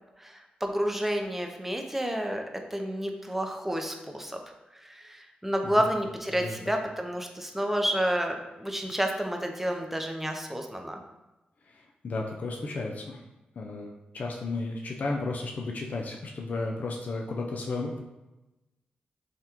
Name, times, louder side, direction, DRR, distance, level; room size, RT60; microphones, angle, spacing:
voice 1, 0.2-2.4 2.7-4.4 4.7-11.0, equal, 10° right, 3 dB, 0.5 m, -30 dB
voice 2, 11.7-13.2 13.6-18.0, left 3 dB, 55° left, 0 dB, 0.4 m, -34 dB
3.5 x 2.2 x 2.8 m, 1.0 s
cardioid pair, 55°, 3 cm